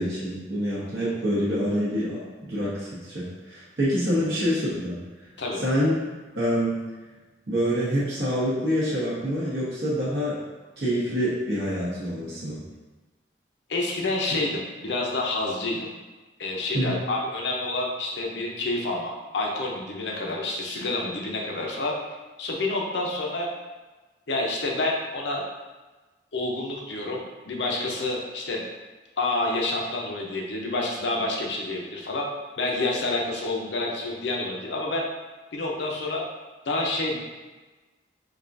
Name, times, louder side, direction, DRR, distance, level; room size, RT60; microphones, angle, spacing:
voice 1, 0.0-5.0 5.6-5.9 6.3-6.8 7.5-10.4 10.8-12.6 16.7-17.0, equal, 65° right, -9 dB, 1.1 m, -26 dB
voice 2, 13.7-15.9 16.4-21.9 22.4-23.5 24.3-25.4 26.3-28.7 29.2-32.2 32.6-35.0 35.5-36.2 36.6-37.2, left 2 dB, 80° left, -1 dB, 0.7 m, -28 dB
5.2 x 2.4 x 2.6 m, 1.2 s
head